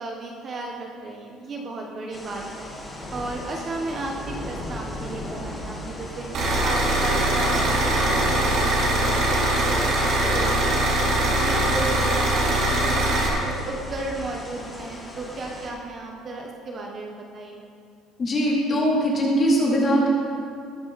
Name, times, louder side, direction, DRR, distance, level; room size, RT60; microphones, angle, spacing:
voice 1, 0.0-2.7 3.1-11.0 11.4-13.1 13.4-17.6, right 2 dB, 30° right, 0 dB, 1.2 m, -34 dB
sound 1, 2.1-15.7, left 1 dB, 10° left, 2.0 m, -37 dB
sound 2, 6.3-13.3, right 1 dB, 55° right, 3.8 m, -22 dB
voice 2, 18.2-20.1, equal, 25° left, -5 dB, 3.6 m, -21 dB
19.5 x 10.5 x 4.2 m, 2.4 s
cardioid pair, 160°, 0 cm